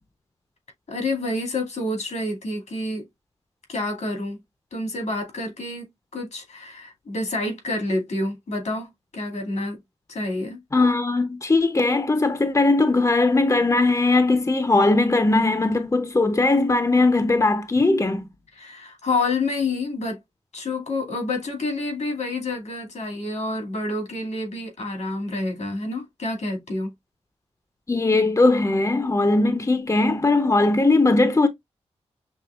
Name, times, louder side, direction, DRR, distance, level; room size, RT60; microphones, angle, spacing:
voice 1, 0.9-3.0 3.7-4.4 4.7-5.9 6.1-8.9 9.1-9.8 10.1-10.6 18.5-20.2 20.5-26.9, left 2 dB, 80° left, 2.1 m, -28 dB
voice 2, 10.7-18.2 27.9-31.5, left 2 dB, 25° left, 0.7 m, -19 dB
6.1 x 2.8 x 2.4 m
cardioid pair, 45°, 12 cm